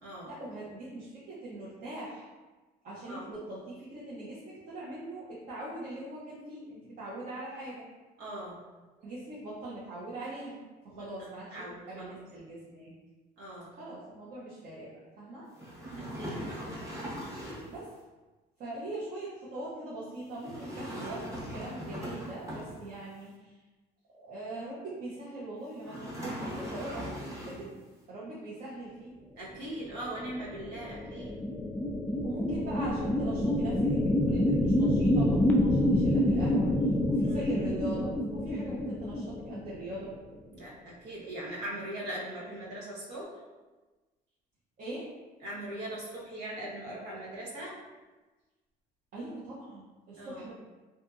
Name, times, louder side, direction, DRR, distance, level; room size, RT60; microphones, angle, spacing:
voice 1, 0.3-2.2 2.8-7.8 9.0-11.6 11.9-12.9 13.8-15.5 17.7-17.9 18.6-23.3 24.2-27.7 28.1-29.1 32.2-36.7 37.1-40.1 44.8-45.1 49.1-50.5, right 1 dB, 55° right, -8 dB, 0.7 m, -41 dB
voice 2, 8.2-8.6 10.9-12.1 13.4-13.7 15.9-16.8 29.4-31.4 37.3-37.5 40.5-43.3 45.4-47.7 50.1-50.4, right 1 dB, 85° right, -6 dB, 0.9 m, -40 dB
sound 1, 15.5-17.8 20.4-23.1 25.8-27.8, equal, 15° right, 0.9 m, -40 dB
sound 2, 30.3-40.0, left 1 dB, 10° left, 0.3 m, -27 dB
2.7 x 2.6 x 2.3 m, 1.2 s
cardioid pair, 110°, 17 cm